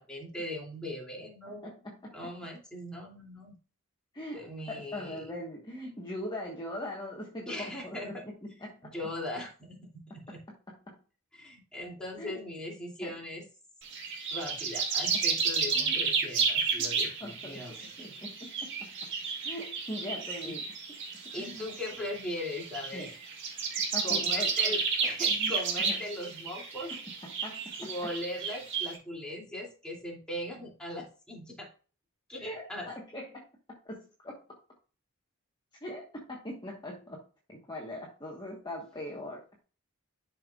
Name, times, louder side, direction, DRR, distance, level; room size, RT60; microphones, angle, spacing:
voice 1, 0.0-1.7 2.1-3.5 4.3-5.2 7.5-8.2 8.9-10.4 11.3-13.4 14.3-17.9 20.4-20.6 21.3-23.1 24.0-26.9 27.8-31.7 32.3-32.9, left 1 dB, 5° left, -3 dB, 2.7 m, -39 dB
voice 2, 1.5-2.3 4.1-8.9 10.3-10.4 10.7-11.0 12.2-12.3 13.0-13.2 15.1-15.2 15.7-16.0 16.8-16.9 17.2-17.7 18.0-19.1 19.4-20.7 21.2-21.6 22.9-23.1 23.9-24.8 25.3-25.5 25.9-26.0 26.9-27.9 32.4-33.5 33.8-34.4 35.8-37.2 37.5-39.4, left 1 dB, 20° left, -2 dB, 1.4 m, -41 dB
sound 1, 13.8-29.0, right 5 dB, 60° right, 2.1 m, -32 dB
11.5 x 5.6 x 2.4 m, 0.37 s
head